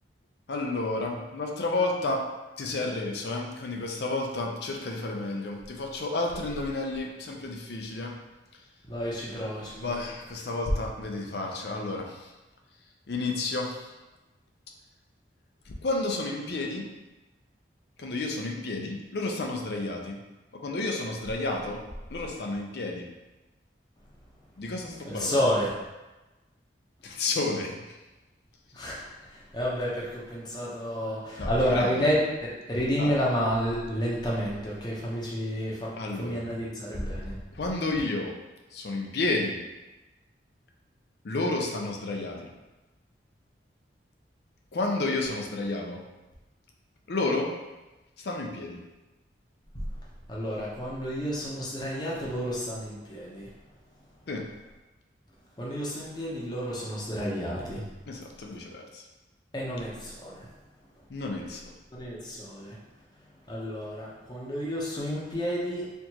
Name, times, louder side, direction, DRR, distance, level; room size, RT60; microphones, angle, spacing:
voice 1, 0.5-2.2 2.6-8.2 9.8-12.3 13.1-13.8 15.8-16.9 18.0-20.2 20.6-21.8 22.1-23.1 24.6-25.4 27.0-27.7 31.4-32.0 33.0-33.1 36.0-36.5 37.6-38.3 38.7-39.6 41.2-42.5 44.7-46.0 47.1-47.5 48.2-48.8 54.3-54.4 58.1-59.0 61.1-61.7, left 2 dB, 60° left, 1 dB, 0.5 m, -31 dB
voice 2, 8.9-10.1 25.0-25.8 28.7-37.3 50.3-53.5 55.6-57.8 59.5-60.4 61.9-62.8 63.5-65.9, equal, 25° left, -5 dB, 0.7 m, -30 dB
4.4 x 2.5 x 2.8 m, 1.1 s
head